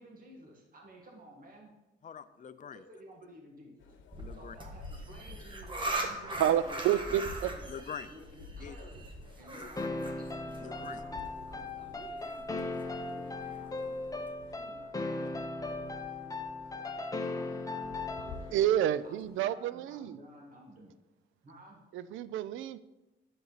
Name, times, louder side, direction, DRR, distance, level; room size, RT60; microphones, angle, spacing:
voice 1, 0.0-1.7 2.7-3.9 4.3-6.8 7.4-7.6 8.1-9.1 9.4-13.8 14.5-14.9 17.2-18.8 19.0-20.9 21.4-21.8, right 1 dB, 45° right, -1 dB, 1.8 m, -54 dB
voice 2, 2.0-2.8 4.2-4.6 7.1-7.2 7.7-8.1 8.6-8.8 9.5-9.9 10.6-11.0 15.2-15.3, left 8 dB, 40° left, 12 dB, 0.6 m, -44 dB
sound 1, 3.8-19.4, left 3 dB, 75° left, 1.0 m, -53 dB
sound 2, 4.1-14.3, right 2 dB, 25° right, 1.5 m, -41 dB
voice 3, 6.3-7.5 18.5-20.2 21.9-22.8, right 11 dB, 80° right, 16 dB, 0.5 m, -29 dB
sound 3, 9.8-18.6, left 2 dB, 15° left, 1.0 m, -38 dB
9.1 x 7.8 x 4.0 m, 1.0 s
cardioid pair, 90°, 20 cm